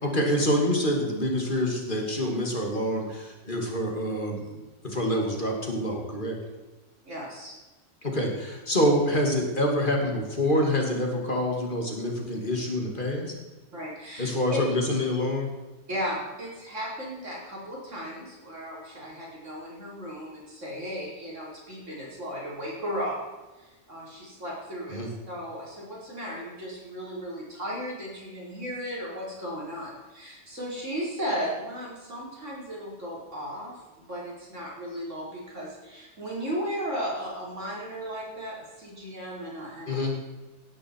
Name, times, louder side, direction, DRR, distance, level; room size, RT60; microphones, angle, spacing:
voice 1, 0.0-6.4 8.0-13.3 14.2-15.5 24.9-25.1 39.9-40.1, equal, 40° left, 1 dB, 2.7 m, -26 dB
voice 2, 7.1-7.5 13.7-14.4 15.9-23.2 23.6-25.0 25.3-40.0, equal, 85° right, -4 dB, 5.2 m, -35 dB
18.0 x 11.0 x 4.7 m, 1.2 s
omnidirectional pair, 1.2 m